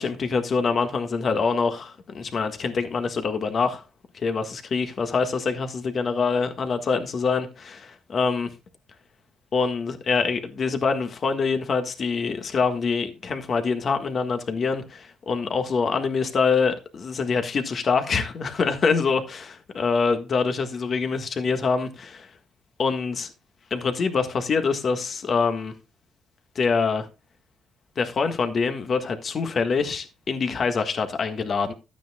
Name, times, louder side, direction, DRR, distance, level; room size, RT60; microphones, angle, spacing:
voice 1, 0.0-3.8 4.1-8.5 9.5-22.3 22.8-23.3 23.7-25.7 26.5-27.1 28.0-31.7, left 5 dB, 50° left, 1.6 m, -25 dB
12.5 x 9.1 x 2.3 m
cardioid pair, 90°, 0 cm